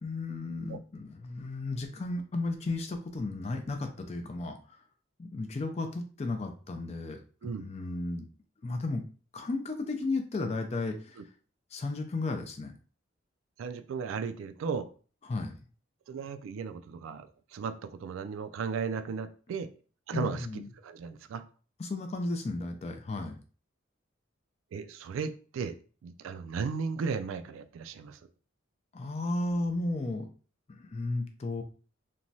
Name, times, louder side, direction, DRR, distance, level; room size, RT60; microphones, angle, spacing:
voice 1, 0.0-4.6 5.2-7.2 7.6-8.2 8.6-9.0 9.3-11.2 11.7-12.7 15.3-15.6 20.1-20.7 21.8-23.4 28.9-30.3 30.8-31.6, left 2 dB, 35° left, 5 dB, 0.4 m, -34 dB
voice 2, 7.4-7.7 11.2-11.3 13.6-14.9 16.1-19.7 20.1-21.4 24.7-25.8 26.0-28.2, right 5 dB, 85° right, 9 dB, 0.3 m, -36 dB
3.0 x 2.2 x 2.6 m, 0.39 s
head